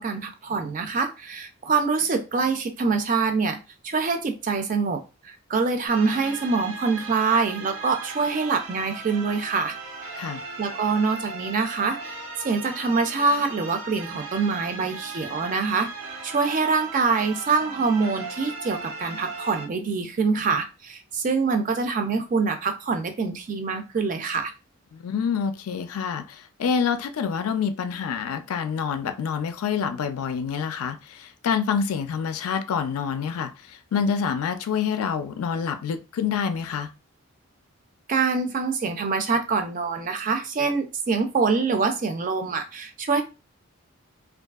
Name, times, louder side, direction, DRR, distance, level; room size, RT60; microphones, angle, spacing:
voice 1, 0.0-3.6 3.8-9.8 10.6-12.1 12.4-15.9 16.2-24.5 38.1-43.2, right 4 dB, 35° right, 0.3 m, -25 dB
sound 1, 5.9-19.7, right 3 dB, 80° right, 0.9 m, -38 dB
voice 2, 24.9-36.9, left 6 dB, 85° left, 0.4 m, -27 dB
2.6 x 2.4 x 2.3 m
head